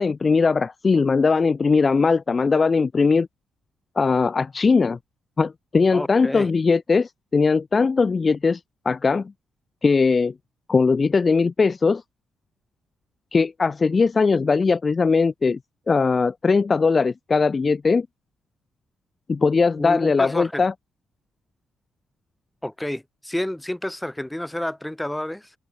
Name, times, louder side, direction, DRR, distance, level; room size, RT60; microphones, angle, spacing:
voice 1, 0.0-3.3 4.0-5.0 5.4-8.6 8.8-9.3 9.8-10.3 10.7-12.0 13.3-15.6 15.9-18.1 19.3-20.7, left 4 dB, 40° left, 1.2 m, -20 dB
voice 2, 5.9-6.5 19.8-20.6 22.6-25.5, left 1 dB, 10° left, 6.4 m, -29 dB
hypercardioid pair, 40°, 0 cm